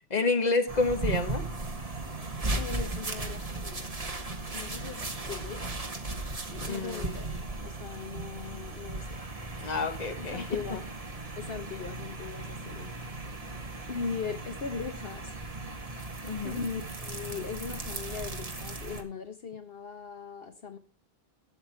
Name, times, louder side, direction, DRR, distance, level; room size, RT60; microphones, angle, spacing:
voice 1, 0.1-1.5 6.6-7.1 9.6-10.4 10.7-10.8 16.2-16.6, left 3 dB, 40° left, 1.4 m, -29 dB
sound 1, 0.7-19.0, right 2 dB, 35° right, 1.6 m, -37 dB
voice 2, 2.4-4.1 4.5-5.0 5.3-5.9 6.5-9.2 10.2-10.9 11.4-12.9 13.9-15.3 16.4-20.8, left 5 dB, 65° left, 1.2 m, -39 dB
12.5 x 7.9 x 4.5 m
omnidirectional pair, 1.0 m